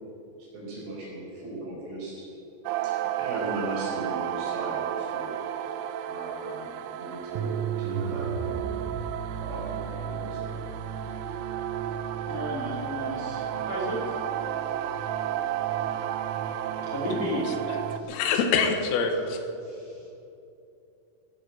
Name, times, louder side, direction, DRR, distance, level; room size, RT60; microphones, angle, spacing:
voice 1, 0.4-2.2 2.8-2.9 3.2-5.4 6.0-8.7 9.4-10.5, right 2 dB, 65° right, -4 dB, 7.0 m, -37 dB
sound 1, 2.7-18.0, right 9 dB, 80° right, 3.2 m, -32 dB
sound 2, 6.5-16.1, right 11 dB, 60° left, 1.0 m, -42 dB
voice 2, 12.2-14.2 16.8-17.5 17.8-18.3 19.1-19.2 19.6-20.1, equal, 40° left, -5 dB, 2.8 m, -34 dB
voice 3, 18.1-19.4, left 5 dB, 90° left, 5 dB, 4.0 m, -25 dB
18.5 x 8.3 x 7.7 m, 2.7 s
omnidirectional pair, 5.8 m